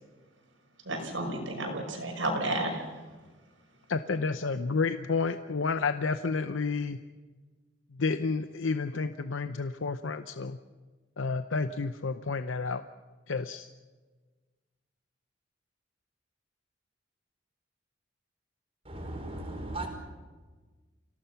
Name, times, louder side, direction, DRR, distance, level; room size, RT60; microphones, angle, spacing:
voice 1, 0.8-3.0, right 1 dB, 85° right, 6.1 m, -32 dB
voice 2, 3.9-7.0 8.0-10.6 11.2-12.8 13.3-13.7, left 4 dB, 90° left, 0.7 m, -30 dB
voice 3, 18.8-19.9, right 2 dB, 30° right, 4.8 m, -37 dB
29.0 x 18.0 x 5.8 m
head